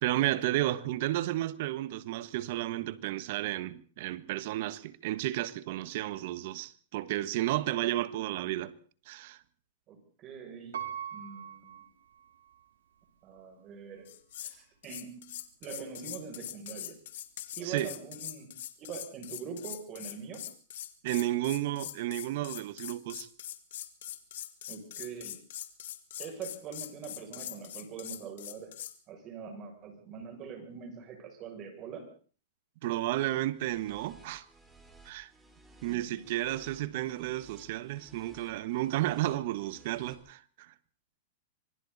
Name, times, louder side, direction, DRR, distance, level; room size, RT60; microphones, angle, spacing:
voice 1, 0.0-8.7 9.1-9.4 17.6-17.9 21.0-23.3 32.8-34.4 35.0-35.3 35.8-40.7, right 15 dB, 55° right, 1.4 m, -32 dB
voice 2, 9.9-10.9 11.1-11.9 13.2-14.1 14.4-15.3 15.6-17.0 17.5-20.4 24.7-25.4 26.2-28.7 29.1-32.1, right 6 dB, 35° right, 7.2 m, -43 dB
Piano, 10.7-12.7 13.3-13.4, right 9 dB, 90° right, 3.0 m, -42 dB
sound 1, 14.1-14.6 14.8-29.0, left 12 dB, 75° left, 2.2 m, -42 dB
sound 2, 33.5-40.1, right 2 dB, 5° right, 5.4 m, -58 dB
26.0 x 23.5 x 4.3 m
hypercardioid pair, 140°, 0 cm